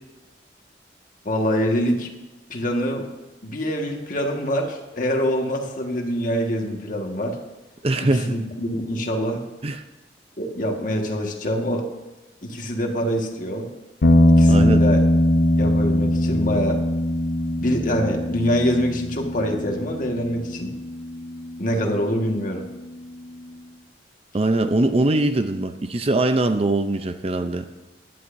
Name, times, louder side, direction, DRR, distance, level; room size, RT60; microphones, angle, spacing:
voice 1, 1.2-2.1 2.5-3.1 3.4-7.4 8.0-9.4 10.4-11.9 12.4-13.7 14.3-15.0 15.6-16.8 17.6-20.7 21.6-22.7, equal, 50° left, 2 dB, 1.7 m, -25 dB
voice 2, 7.8-8.4 9.6-9.8 14.5-14.8 24.3-27.6, right 2 dB, 35° right, 9 dB, 0.6 m, -22 dB
sound 1, 14.0-22.4, left 1 dB, 75° left, 0.8 m, -21 dB
17.0 x 11.0 x 2.7 m, 1.1 s
head